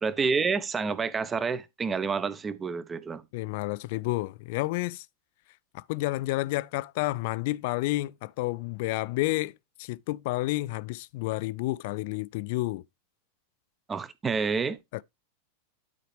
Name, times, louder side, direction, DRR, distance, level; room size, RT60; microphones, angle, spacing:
voice 1, 0.0-3.2 13.9-14.8, right 5 dB, 20° right, 0.8 m, -28 dB
voice 2, 3.3-5.1 5.7-9.5 9.8-12.8 14.9-15.0, left 19 dB, 50° left, 0.4 m, -30 dB
12.0 x 4.9 x 3.3 m
figure-of-eight pair, 90°, 0 cm